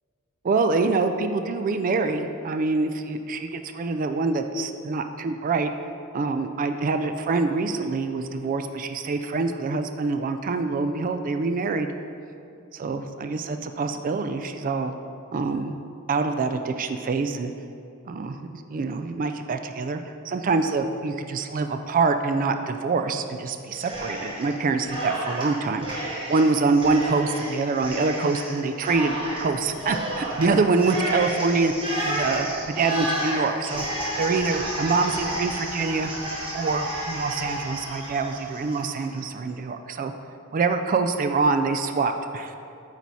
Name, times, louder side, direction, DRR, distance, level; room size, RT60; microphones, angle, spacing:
voice 1, 0.4-5.7 6.1-11.9 12.7-14.9 15.3-15.7 16.1-17.5 18.1-25.9 26.3-33.8 34.2-36.1 36.5-40.1 40.5-42.6, right 4 dB, 40° right, 7 dB, 0.4 m, -25 dB
Cheering, 23.7-24.5 24.8-39.2, right 1 dB, 25° right, 1.6 m, -31 dB
8.3 x 4.1 x 4.6 m, 2.4 s
head